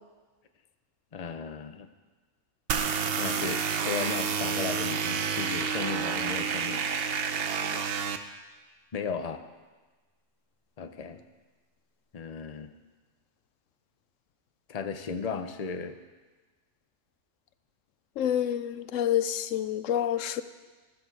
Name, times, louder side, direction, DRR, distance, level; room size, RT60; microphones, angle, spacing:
voice 1, 1.1-1.9 3.2-6.9 8.9-9.4 10.8-11.2 12.1-12.7 14.7-16.0, left 5 dB, 35° left, 8 dB, 0.8 m, -35 dB
sound 1, 2.7-8.2, right 6 dB, 55° right, 0.9 m, -29 dB
voice 2, 18.2-20.4, left 10 dB, 85° left, 13 dB, 1.0 m, -28 dB
13.5 x 13.5 x 4.7 m, 1.3 s
omnidirectional pair, 1.3 m